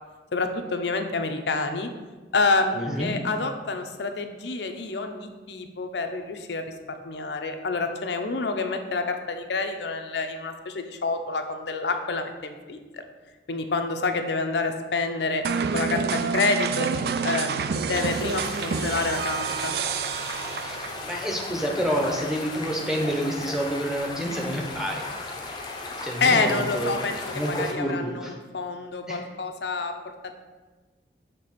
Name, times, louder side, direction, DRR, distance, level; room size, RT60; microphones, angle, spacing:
voice 1, 0.3-1.9 2.3-13.0 13.5-15.4 15.7-16.9 17.2-19.7 26.2-30.3, left 3 dB, 75° left, 6 dB, 0.6 m, -28 dB
voice 2, 2.7-3.1 20.6-20.8 21.1-25.1 26.0-27.1 27.3-28.3 29.1-29.2, equal, 5° right, -1 dB, 0.8 m, -28 dB
sound 1, 15.4-21.1, right 6 dB, 60° right, 0.3 m, -28 dB
sound 2, 17.9-27.7, left 3 dB, 25° left, 0.6 m, -36 dB
6.7 x 3.4 x 5.7 m, 1.3 s
head